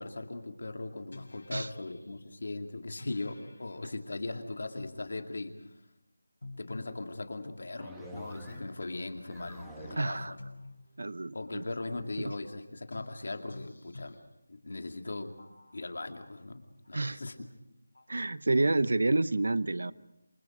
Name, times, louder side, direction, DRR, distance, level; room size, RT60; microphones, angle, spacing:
voice 1, 0.0-5.7 6.6-10.4 11.3-14.2 14.5-15.3 15.7-17.4, left 2 dB, 50° left, 6 dB, 2.4 m, -39 dB
sound 1, 1.1-2.2 3.0-3.8 4.8-5.2 6.4-7.1 8.5-8.9 10.1-10.9 11.9-12.3 12.9-14.2 15.4-16.0 16.8-16.9 17.9-18.2 18.8-18.9, left 2 dB, 80° left, 6.1 m, -49 dB
sound 2, 7.8-8.8 9.1-10.2, right 1 dB, ahead, 1.2 m, -47 dB
voice 2, 10.0-10.3 11.0-11.6 12.2-12.3 16.9-17.2 18.1-19.9, right 2 dB, 55° right, 17 dB, 0.8 m, -29 dB
27.5 x 24.5 x 5.1 m, 0.87 s
figure-of-eight pair, 180°, 0 cm